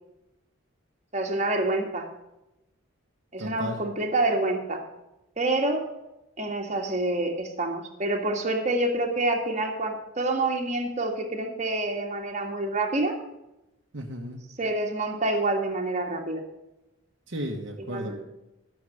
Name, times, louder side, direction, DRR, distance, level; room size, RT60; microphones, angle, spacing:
voice 1, 1.1-2.1 3.3-4.8 5.4-5.9 6.4-13.1 14.6-16.4 17.9-18.2, right 2 dB, 35° right, 1 dB, 1.9 m, -27 dB
voice 2, 3.4-3.8 13.9-14.4 17.3-18.2, equal, 60° right, 1 dB, 1.4 m, -34 dB
13.0 x 7.2 x 6.6 m, 0.93 s
head